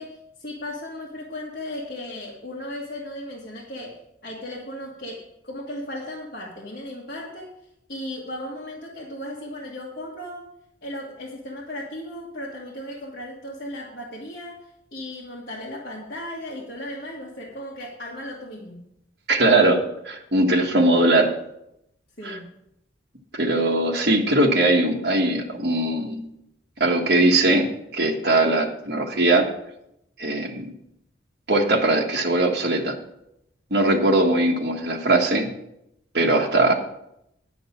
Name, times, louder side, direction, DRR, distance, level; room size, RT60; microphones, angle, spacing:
voice 1, 0.0-4.0 4.2-7.5 7.9-10.5 10.8-14.6 14.9-18.8 22.2-22.4, left 1 dB, 50° left, -5 dB, 1.8 m, -36 dB
voice 2, 19.3-21.3 22.2-22.4 23.3-26.3 26.8-27.7 27.9-29.4 30.2-30.7 31.5-33.0 33.7-35.5 36.1-36.7, right 2 dB, 60° right, 0 dB, 1.6 m, -20 dB
11.0 x 5.2 x 8.4 m, 0.80 s
head